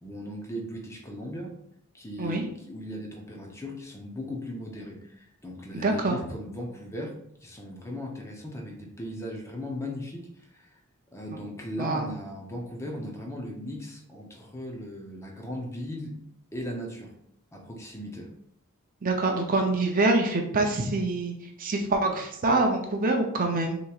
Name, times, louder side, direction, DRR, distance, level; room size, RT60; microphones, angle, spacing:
voice 1, 0.0-1.6 1.9-10.8 11.1-16.2 16.5-17.2 17.5-18.3, equal, 15° left, 0 dB, 0.7 m, -37 dB
voice 2, 5.8-6.2 11.8-12.1 19.0-23.8, right 2 dB, 40° right, 3 dB, 0.5 m, -25 dB
6.3 x 3.0 x 2.4 m, 0.74 s
head